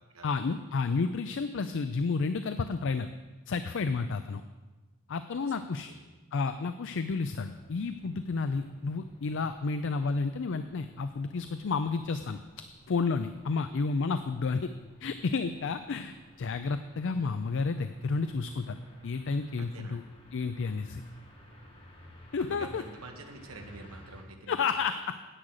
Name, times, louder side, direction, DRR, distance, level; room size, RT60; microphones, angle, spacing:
voice 1, 0.2-3.1 3.5-4.4 5.1-5.9 6.3-12.4 12.9-14.7 15.0-18.8 19.0-20.0 20.3-21.0 22.3-22.8 24.5-25.0, left 4 dB, 60° left, 10 dB, 0.4 m, -31 dB
sound 1, 6.8-24.2, equal, 25° left, 1.7 m, -53 dB
voice 2, 19.6-20.0 22.4-24.6, right 3 dB, 80° right, 3 dB, 1.1 m, -47 dB
10.0 x 8.8 x 6.5 m, 1.2 s
head